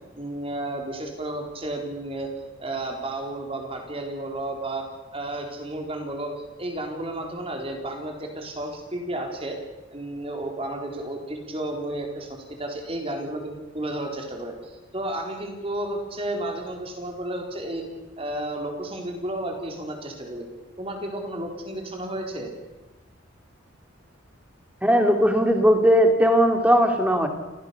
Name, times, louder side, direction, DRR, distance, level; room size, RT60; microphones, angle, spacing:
voice 1, 0.2-2.3 2.6-4.9 5.1-9.6 9.9-17.8 18.2-20.5 20.8-22.5, right 1 dB, 30° right, 2 dB, 4.2 m, -32 dB
voice 2, 24.8-27.3, equal, 5° right, 5 dB, 2.5 m, -18 dB
29.0 x 15.5 x 7.1 m, 1.1 s
head